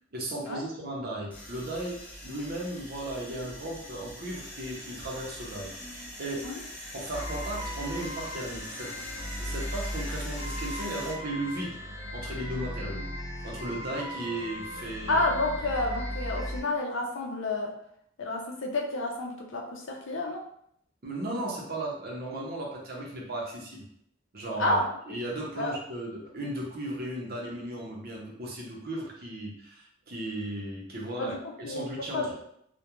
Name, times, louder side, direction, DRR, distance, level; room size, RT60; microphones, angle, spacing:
voice 1, 0.1-5.7 6.2-6.5 6.9-8.9 9.4-11.8 12.1-13.1 13.4-15.2 21.0-23.9 24.3-24.8 25.1-32.4, right 1 dB, 50° right, -2 dB, 0.6 m, -36 dB
sound 1, 1.3-11.1, left 1 dB, 5° left, 0.6 m, -43 dB
sound 2, 7.1-16.6, equal, 35° left, 1.1 m, -37 dB
voice 2, 15.1-17.7 18.2-20.4 24.6-24.8 25.6-25.7 31.2-31.8 32.1-32.4, left 2 dB, 70° left, 0 dB, 0.5 m, -30 dB
2.3 x 2.1 x 2.9 m, 0.70 s
head